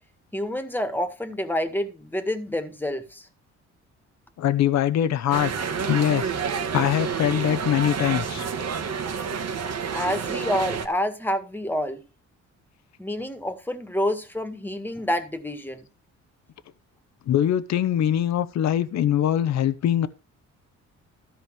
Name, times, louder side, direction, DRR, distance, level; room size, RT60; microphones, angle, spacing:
voice 1, 0.3-3.3 9.9-12.0 13.0-15.9, left 1 dB, 5° left, 1.8 m, -28 dB
voice 2, 4.4-5.5 5.9-6.3 6.7-8.5 17.3-20.1, left 10 dB, 65° left, 0.8 m, -22 dB
sound 1, 5.3-10.9, right 6 dB, 55° right, 1.7 m, -29 dB
13.5 x 5.2 x 6.4 m
cardioid pair, 90°, 30 cm